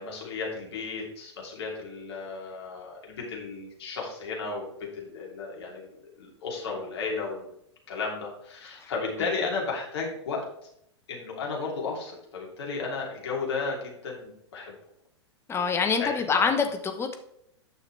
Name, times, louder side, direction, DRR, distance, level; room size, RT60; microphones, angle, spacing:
voice 1, 0.0-7.5 7.9-10.5 11.1-14.7 15.6-16.6, left 4 dB, 60° left, -1 dB, 3.1 m, -34 dB
voice 2, 15.5-17.2, left 5 dB, 15° left, 6 dB, 1.1 m, -25 dB
9.2 x 6.3 x 3.4 m, 0.74 s
figure-of-eight pair, 100°, 15 cm